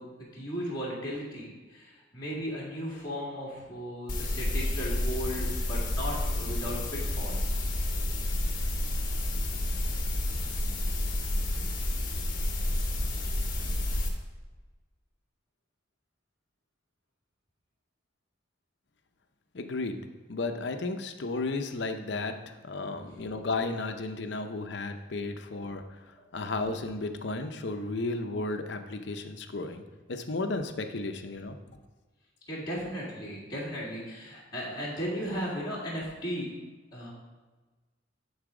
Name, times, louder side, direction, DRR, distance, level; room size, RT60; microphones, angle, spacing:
voice 1, 0.0-6.8 7.1-7.6 8.0-8.1 22.8-23.2 32.5-36.5 36.9-37.1, equal, 20° left, -8 dB, 2.2 m, -36 dB
sound 1, 4.1-14.1, left 1 dB, 45° left, 1.3 m, -30 dB
voice 2, 19.5-25.8 26.3-29.8 30.1-31.6, left 3 dB, 65° left, 7 dB, 0.7 m, -33 dB
10.5 x 4.1 x 5.0 m, 1.3 s
head